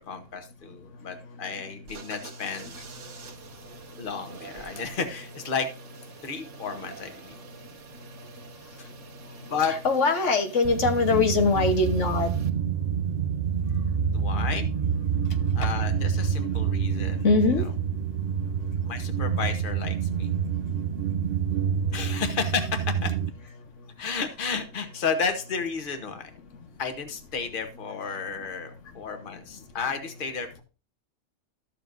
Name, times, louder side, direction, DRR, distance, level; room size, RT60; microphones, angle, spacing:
voice 1, 0.1-2.8 4.0-5.7 6.2-7.4 8.8-8.9 9.4-9.7 14.0-14.7 15.5-17.3 18.8-20.3 21.9-23.1 24.0-26.3 26.8-30.6, left 5 dB, 45° left, 7 dB, 1.3 m, -32 dB
sound 1, 1.8-12.5, right 6 dB, 75° right, 1.4 m, -47 dB
voice 2, 3.6-4.0 7.3-7.4 8.0-8.3 8.8-8.9 9.2-9.4 9.7-12.3 15.3-15.7 17.1-17.7 18.4-18.5 19.0-19.1 28.1-28.2, left 3 dB, 85° left, 6 dB, 1.5 m, -24 dB
sound 2, 10.6-23.3, right 7 dB, 55° right, 0.7 m, -27 dB
13.0 x 7.5 x 2.6 m, 0.33 s
omnidirectional pair, 1.2 m